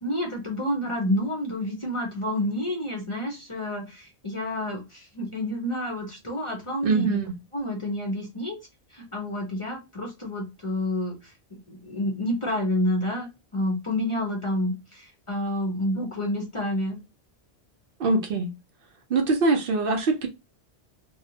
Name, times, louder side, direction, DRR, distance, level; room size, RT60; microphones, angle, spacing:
voice 1, 0.0-7.2 7.5-8.6 8.9-17.0, left 1 dB, 35° left, 0.6 m, -29 dB
voice 2, 6.8-7.3 18.0-18.5 19.1-20.3, right 3 dB, 65° right, 0.7 m, -23 dB
2.7 x 2.0 x 2.7 m
omnidirectional pair, 1.1 m